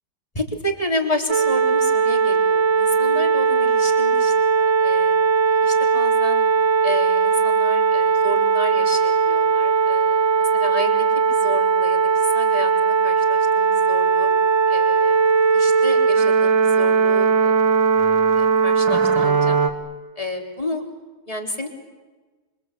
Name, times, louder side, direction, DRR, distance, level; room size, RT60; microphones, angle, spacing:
voice 1, 0.4-6.5 6.8-14.3 14.7-18.0 18.3-19.6 20.2-20.8 21.3-21.7, left 1 dB, 15° left, 3 dB, 3.6 m, -31 dB
sound 1, 1.3-19.7, right 5 dB, 75° right, 2.4 m, -18 dB
27.5 x 25.5 x 8.5 m, 1.3 s
omnidirectional pair, 2.1 m